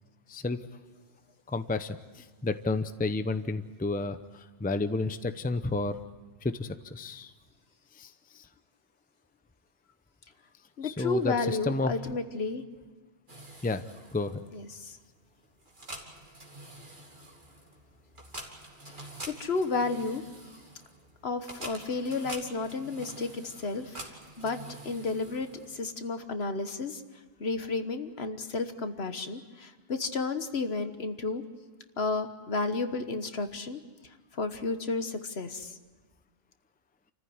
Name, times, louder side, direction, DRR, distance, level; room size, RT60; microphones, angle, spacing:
voice 1, 0.3-0.6 1.5-6.0 6.4-7.3 8.0-8.5 10.8-11.9 13.6-13.8 14.1-14.4, left 3 dB, 10° left, 10 dB, 0.6 m, -31 dB
voice 2, 10.8-12.6 14.5-15.0 19.0-19.1 19.4-20.2 21.2-24.0 24.4-24.6 24.8-27.0 27.4-31.4 32.0-33.8 34.3-35.8, left 3 dB, 65° left, 9 dB, 1.5 m, -32 dB
sound 1, 13.3-26.0, right 1 dB, 45° right, 2.8 m, -47 dB
28.5 x 14.5 x 9.5 m, 1.4 s
omnidirectional pair, 1.1 m